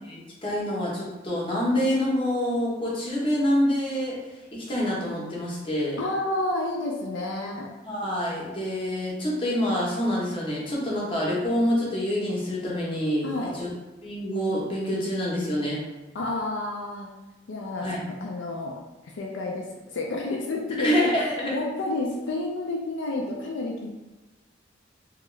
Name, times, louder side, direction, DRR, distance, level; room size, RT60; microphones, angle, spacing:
voice 1, 0.0-4.2 4.5-6.0 7.8-13.7 14.0-15.8 17.8-18.0 20.8-21.5, equal, 30° left, -5 dB, 0.8 m, -26 dB
voice 2, 6.0-7.7 13.2-13.6 16.1-17.1 17.5-17.9 18.2-19.7 19.9-23.9, left 2 dB, 75° left, -1 dB, 0.4 m, -30 dB
2.8 x 2.3 x 3.1 m, 1.1 s
head